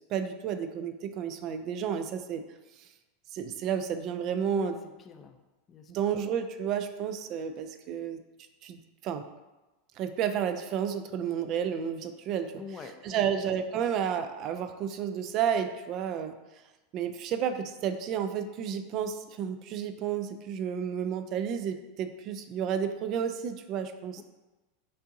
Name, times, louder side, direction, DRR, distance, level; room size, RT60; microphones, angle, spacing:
voice 1, 0.0-2.4 3.3-4.8 5.9-8.2 8.6-9.2 10.0-12.6 13.0-16.3 16.9-24.2, right 8 dB, 45° right, 9 dB, 0.4 m, -31 dB
voice 2, 5.0-5.4 5.7-5.9 12.6-13.3, left 5 dB, 30° left, 7 dB, 0.5 m, -44 dB
5.4 x 2.5 x 3.8 m, 1.1 s
supercardioid pair, 120°, 0 cm